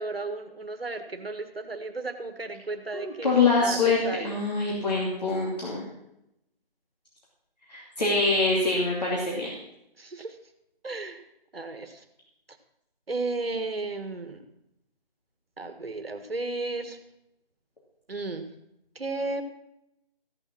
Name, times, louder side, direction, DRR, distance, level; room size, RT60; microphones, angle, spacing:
voice 1, 0.0-4.3 10.0-10.4 10.8-11.2 11.5-12.0 13.1-14.4 15.6-17.0 18.1-18.5 18.9-19.4, right 3 dB, 75° right, 7 dB, 1.7 m, -34 dB
voice 2, 2.9-5.8 7.7-9.5, left 3 dB, 45° left, -4 dB, 2.7 m, -25 dB
15.0 x 7.0 x 6.1 m, 0.83 s
figure-of-eight pair, 165°, 30 cm